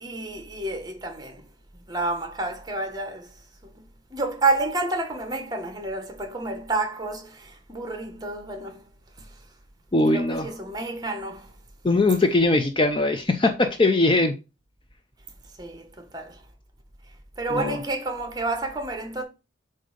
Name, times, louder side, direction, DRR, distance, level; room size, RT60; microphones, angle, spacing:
voice 1, 0.0-1.4 1.8-3.3 4.1-8.8 10.1-11.5 15.6-16.4 17.4-19.2, right 2 dB, 20° right, 1.2 m, -29 dB
voice 2, 9.9-10.5 11.8-14.3 17.5-17.8, left 2 dB, 25° left, 0.5 m, -21 dB
7.6 x 2.7 x 5.0 m
head